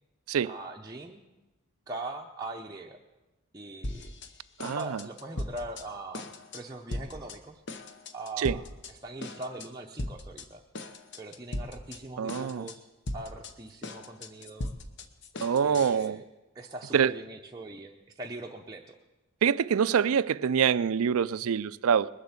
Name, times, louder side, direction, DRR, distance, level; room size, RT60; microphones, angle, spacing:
voice 1, 0.4-1.2 1.9-3.0 3.5-4.1 4.6-7.6 8.1-8.6 9.0-10.6 11.2-12.9 13.1-14.7 15.6-16.2 16.5-18.9, right 2 dB, 15° right, 0.6 m, -41 dB
sound 1, 3.8-4.3 4.6-5.8 6.1-6.6 6.9-7.4 7.7-8.9 9.2-9.7 10.0-10.5 10.7-12.0 12.3-12.8 13.1-16.1, left 1 dB, 50° left, 0.9 m, -38 dB
voice 2, 4.6-5.0 8.4-8.6 12.2-12.7 15.4-16.2 16.9-17.1 19.4-22.1, right 7 dB, 80° right, 0.4 m, -25 dB
20.5 x 7.6 x 7.2 m
head